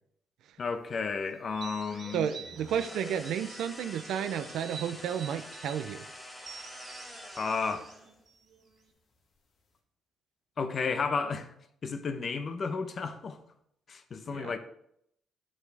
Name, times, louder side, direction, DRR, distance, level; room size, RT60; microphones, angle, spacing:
voice 1, 0.6-2.3 2.6-2.8 7.4-7.9 10.6-11.5 11.8-13.4 13.9-14.6, left 5 dB, 45° left, 0.9 m, -32 dB
sound 1, 0.8-0.9 1.2-2.5 2.8-3.7 3.9-6.1 6.5-6.7 7.3-7.6 8.7-8.8 9.1-9.2, equal, 70° left, 1.9 m, -54 dB
sound 2, 1.4-3.5 3.9-5.8 6.4-8.9, right 6 dB, 60° right, 1.7 m, -48 dB
voice 2, 2.1-6.0 14.3-14.6, right 9 dB, 80° right, 0.6 m, -32 dB
sound 3, 2.6-8.2, left 1 dB, 5° left, 2.5 m, -46 dB
8.3 x 7.5 x 3.4 m
cardioid pair, 90°, 0 cm